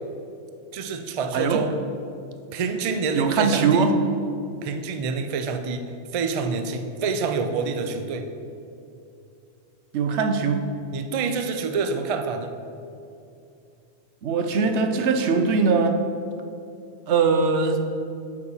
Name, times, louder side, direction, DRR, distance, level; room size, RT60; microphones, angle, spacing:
voice 1, 0.7-1.8 2.5-3.9 4.6-5.9 6.1-8.3 10.9-12.5, right 4 dB, 50° right, 7 dB, 0.4 m, -27 dB
voice 2, 3.1-4.0 9.9-10.7 14.2-16.0 17.1-17.8, right 5 dB, 80° right, 7 dB, 1.0 m, -21 dB
8.2 x 4.8 x 5.5 m, 2.6 s
omnidirectional pair, 1.2 m